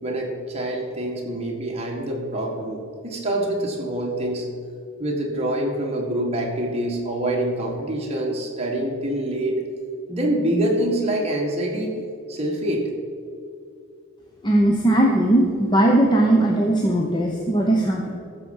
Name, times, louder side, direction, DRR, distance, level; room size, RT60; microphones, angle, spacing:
voice 1, 0.0-4.5 5.0-9.6 10.1-11.9 12.3-12.9, right 1 dB, 30° right, -1 dB, 1.7 m, -25 dB
voice 2, 14.4-18.1, right 1 dB, 20° left, 0 dB, 0.8 m, -19 dB
14.5 x 6.9 x 5.5 m, 2.4 s
head